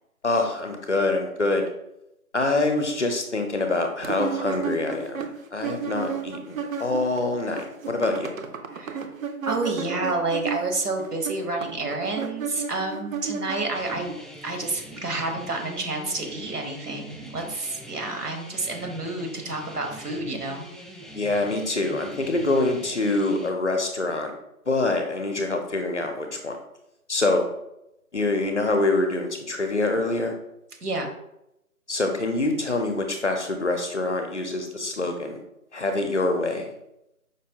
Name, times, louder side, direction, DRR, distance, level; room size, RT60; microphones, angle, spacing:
voice 1, 0.2-1.6 2.3-8.3 21.1-24.3 24.7-26.6 27.1-27.4 28.1-30.3 31.9-35.4 35.7-36.7, left 2 dB, 50° left, 5 dB, 0.5 m, -25 dB
sound 1, 4.0-7.2 7.4-14.1, right 6 dB, 65° right, 0.5 m, -33 dB
voice 2, 8.7-9.0 9.5-14.2 14.4-20.7 30.8-31.1, right 2 dB, 85° right, 3 dB, 1.2 m, -29 dB
sound 2, 13.7-23.5, equal, ahead, 0.3 m, -43 dB
5.1 x 2.1 x 2.7 m, 0.84 s
figure-of-eight pair, 170°, 45 cm